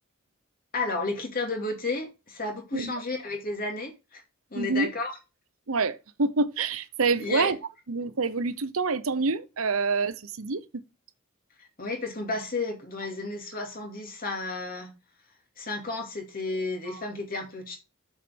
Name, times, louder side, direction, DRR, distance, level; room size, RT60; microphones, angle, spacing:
voice 1, 0.7-4.2 4.5-5.1 7.2-7.5 11.6-14.9 15.6-17.8, left 3 dB, 45° left, 2.6 m, -32 dB
voice 2, 4.5-4.9 5.7-7.6 7.9-10.8 16.9-17.0, right 4 dB, 85° right, 0.9 m, -27 dB
7.4 x 7.2 x 3.5 m
head